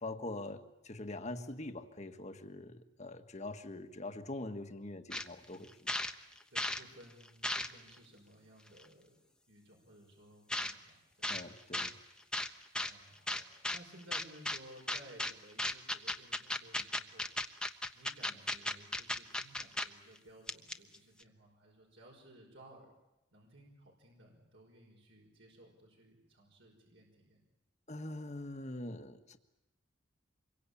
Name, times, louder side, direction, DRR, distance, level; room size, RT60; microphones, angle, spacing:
voice 1, 0.0-5.9 11.3-11.9 27.9-29.4, left 2 dB, 35° left, 7 dB, 1.7 m, -43 dB
sound 1, 5.1-5.3 5.6-6.8 7.2-7.9 8.8-8.9 10.5-10.7 11.2-11.4 11.7-11.9 12.3-12.9 13.3-13.8 14.1-14.6 14.9-15.3 15.6-19.9 20.2-20.3 20.5-21.0, left 1 dB, 5° left, 1.0 m, -35 dB
voice 2, 6.5-9.2 9.5-11.4 12.8-13.4 13.7-17.3 18.0-22.9 23.3-27.4, right 1 dB, 65° right, 0 dB, 5.5 m, -58 dB
26.5 x 23.0 x 8.7 m, 0.95 s
head